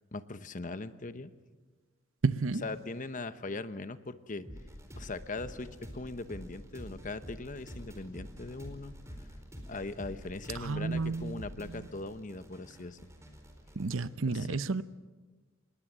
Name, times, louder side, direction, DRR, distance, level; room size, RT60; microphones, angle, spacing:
voice 1, 0.1-1.3 2.6-4.5 5.0-8.9 9.7-13.0 14.3-14.6, left 3 dB, 40° left, 1.0 m, -40 dB
voice 2, 2.2-2.7 10.5-11.9 13.8-14.8, right 3 dB, 80° right, 0.8 m, -32 dB
sound 1, 4.4-14.1, equal, 15° right, 4.3 m, -48 dB
27.0 x 20.5 x 7.5 m
head